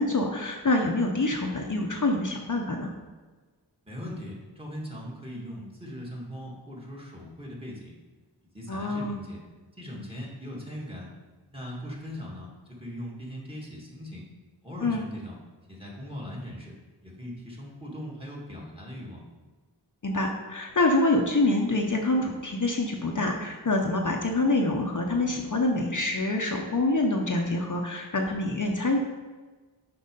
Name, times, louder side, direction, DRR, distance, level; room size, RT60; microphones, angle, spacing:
voice 1, 0.0-2.9 8.7-9.2 14.8-15.0 20.0-29.0, left 2 dB, 45° left, 1 dB, 0.7 m, -26 dB
voice 2, 3.8-8.0 8.4-9.4 9.8-11.1 11.5-14.2 14.6-15.4 15.7-16.7 17.0-19.2, equal, 15° right, -3 dB, 1.9 m, -40 dB
6.5 x 4.6 x 5.3 m, 1.3 s
wide cardioid pair, 60°, 43 cm